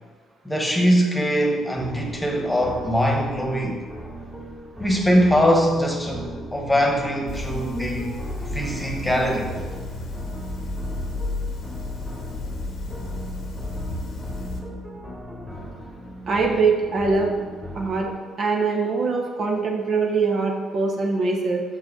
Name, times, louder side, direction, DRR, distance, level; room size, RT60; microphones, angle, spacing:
voice 1, 0.4-3.8 4.8-8.2 8.5-9.5, equal, 10° left, 1 dB, 1.4 m, -22 dB
sound 1, 1.8-18.2, equal, 5° right, 1.6 m, -38 dB
sound 2, 7.3-14.6, left 2 dB, 55° left, 1.0 m, -32 dB
voice 2, 16.3-17.3 17.7-18.1 18.4-21.6, right 4 dB, 45° right, 0 dB, 1.0 m, -22 dB
5.8 x 4.8 x 5.1 m, 1.5 s
figure-of-eight pair, 45°, 0 cm